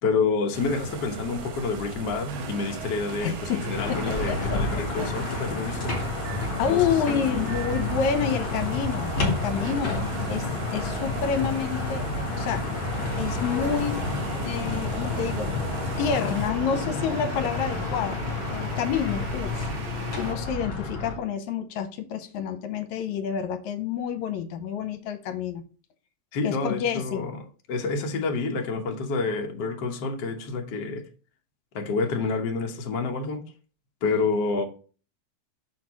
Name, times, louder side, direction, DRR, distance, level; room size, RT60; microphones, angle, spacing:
voice 1, 0.0-6.0 6.7-7.4 26.3-27.4 27.7-31.0 31.7-33.4 34.0-34.6, left 4 dB, 60° left, 1.1 m, -28 dB
sound 1, 0.5-16.5, right 4 dB, 90° right, 2.6 m, -39 dB
sound 2, 2.3-20.3, right 2 dB, 65° right, 1.3 m, -39 dB
voice 2, 3.2-5.1 6.6-12.0 12.3-12.8 13.2-14.0 14.4-15.5 16.0-25.6 26.4-27.2 34.5-34.6, left 7 dB, 75° left, 2.1 m, -29 dB
sound 3, 3.7-21.2, left 2 dB, 45° left, 2.8 m, -30 dB
6.5 x 4.6 x 4.8 m
omnidirectional pair, 3.4 m